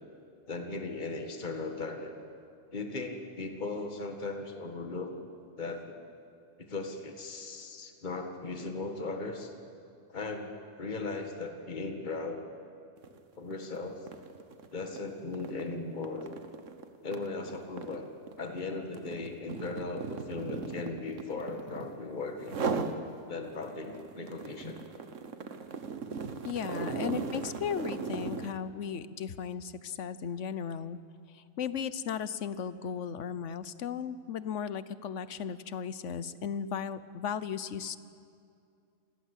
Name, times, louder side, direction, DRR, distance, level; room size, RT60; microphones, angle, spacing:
voice 1, 0.5-2.2 2.7-5.1 5.6-6.0 6.6-9.5 10.1-10.5 10.8-12.4 13.4-14.0 14.7-16.3 17.0-18.1 18.4-22.6 23.3-24.8 26.7-26.9, left 3 dB, 40° left, 5 dB, 1.9 m, -37 dB
sound 1, 13.0-13.2 13.5-22.0 22.4-23.0 23.4-28.6, right 5 dB, 80° right, 1.6 m, -38 dB
voice 2, 26.4-31.0 31.3-38.0, left 7 dB, 75° left, 15 dB, 1.2 m, -36 dB
27.0 x 20.0 x 8.3 m, 2.5 s
omnidirectional pair, 1.3 m